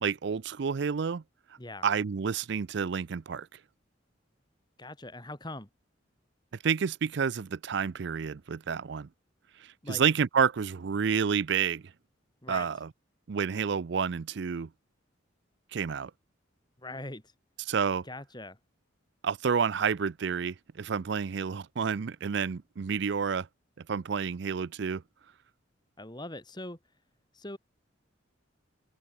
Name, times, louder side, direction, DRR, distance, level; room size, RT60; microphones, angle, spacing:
voice 1, 0.0-1.2 1.8-3.5 6.6-9.1 9.9-11.8 12.5-12.9 13.3-14.7 15.7-16.1 17.7-18.0 19.2-23.5 23.9-25.0, right 6 dB, 60° right, 0.5 m, -29 dB
voice 2, 4.8-5.7 9.8-10.0 12.4-12.7 16.8-17.3 18.0-18.6 26.0-26.8 27.3-27.6, left 2 dB, 20° left, 4.0 m, -41 dB
open air
head